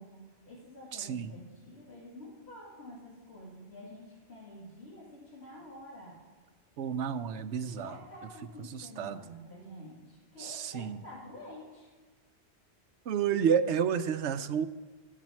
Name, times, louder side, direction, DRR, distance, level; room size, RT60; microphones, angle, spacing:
voice 1, 0.0-6.2 7.8-11.9, left 1 dB, 65° left, -5 dB, 2.7 m, -49 dB
voice 2, 0.9-1.3 6.8-8.0 8.7-9.2 10.4-11.0 13.1-14.7, right 7 dB, 75° right, 11 dB, 1.0 m, -30 dB
14.0 x 7.6 x 7.5 m, 1.4 s
omnidirectional pair, 1.2 m